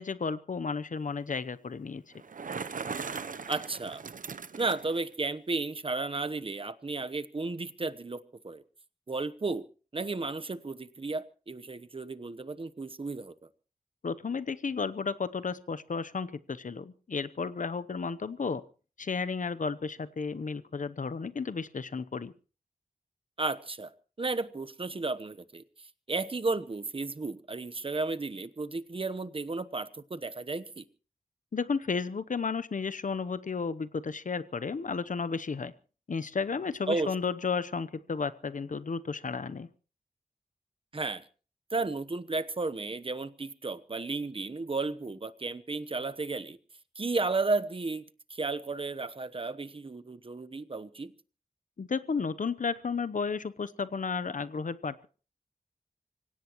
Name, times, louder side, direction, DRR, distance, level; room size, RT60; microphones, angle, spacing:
voice 1, 0.0-2.0 14.0-18.6 19.0-22.3 31.5-35.7 36.1-39.7 51.8-55.1, left 5 dB, 65° left, 14 dB, 0.8 m, -33 dB
Bicycle, 2.1-5.0, right 5 dB, 70° right, 0.8 m, -39 dB
voice 2, 3.5-4.0 4.6-8.6 9.1-9.7 9.9-13.3 23.4-23.9 24.2-25.6 26.1-30.9 36.9-37.1 40.9-41.2 41.7-46.6 46.9-48.0 48.3-51.1, right 3 dB, 40° right, 12 dB, 1.0 m, -33 dB
26.0 x 17.0 x 3.1 m, 0.37 s
wide cardioid pair, 85°, 14 cm